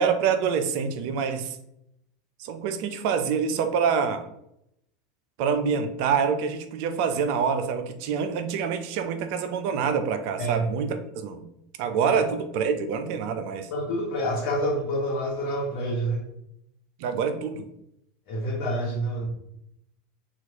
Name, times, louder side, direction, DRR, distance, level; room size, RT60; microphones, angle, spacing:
voice 1, 0.0-1.6 2.4-4.2 5.4-11.4 11.8-13.7 17.0-17.7, right 6 dB, 60° right, 8 dB, 0.3 m, -26 dB
voice 2, 13.7-16.2 18.3-19.3, equal, 55° left, -5 dB, 0.8 m, -27 dB
2.9 x 2.4 x 2.8 m, 0.79 s
hypercardioid pair, 85°, 0 cm